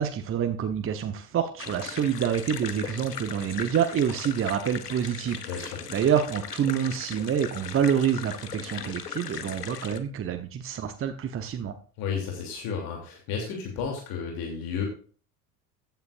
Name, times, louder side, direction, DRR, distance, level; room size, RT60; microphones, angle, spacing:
voice 1, 0.0-11.8, right 8 dB, 30° right, 8 dB, 1.1 m, -27 dB
sound 1, 1.6-10.0, left 8 dB, 85° left, 0.9 m, -38 dB
voice 2, 5.5-5.8 12.0-14.9, left 6 dB, 50° left, 0 dB, 3.2 m, -32 dB
15.0 x 9.2 x 2.6 m, 0.41 s
figure-of-eight pair, 65°, 46 cm